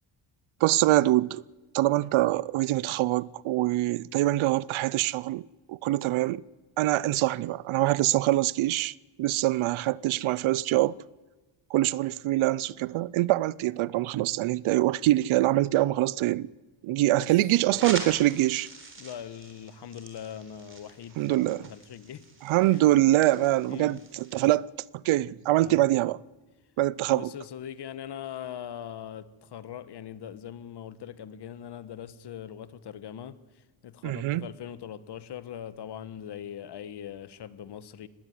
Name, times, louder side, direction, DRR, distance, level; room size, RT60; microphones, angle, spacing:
voice 1, 0.6-1.4 1.7-6.4 6.8-10.9 11.7-16.5 16.8-18.7 21.2-21.7 22.4-24.7 25.0-26.2 26.8-27.3 34.0-34.5, right 16 dB, 75° right, 0.6 m, -24 dB
voice 2, 17.6-17.9 19.0-22.3 22.6-22.8 23.7-24.0 25.6-25.8 27.1-38.1, left 9 dB, 55° left, 1.2 m, -41 dB
sound 1, 17.7-24.5, right 3 dB, 25° right, 3.7 m, -43 dB
20.0 x 17.0 x 9.6 m
cardioid pair, 130°, 49 cm